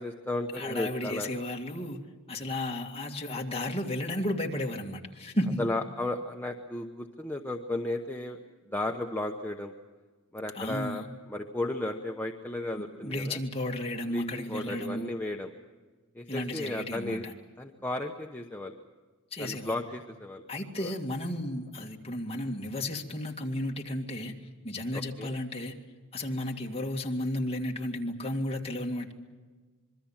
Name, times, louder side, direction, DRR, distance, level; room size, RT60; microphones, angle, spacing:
voice 1, 0.0-1.3 5.6-8.4 8.7-9.7 10.3-13.4 14.1-15.5 16.1-17.3 17.6-18.7 19.4-20.4 20.8-20.9 24.9-25.3, left 1 dB, 10° left, 2 dB, 0.9 m, -34 dB
voice 2, 0.5-2.0 2.3-5.7 10.5-11.1 13.0-15.1 16.3-17.3 19.3-19.8 20.5-24.3 24.6-25.8 26.1-29.1, left 1 dB, 25° left, 0 dB, 2.2 m, -33 dB
26.0 x 23.0 x 7.4 m, 1.4 s
head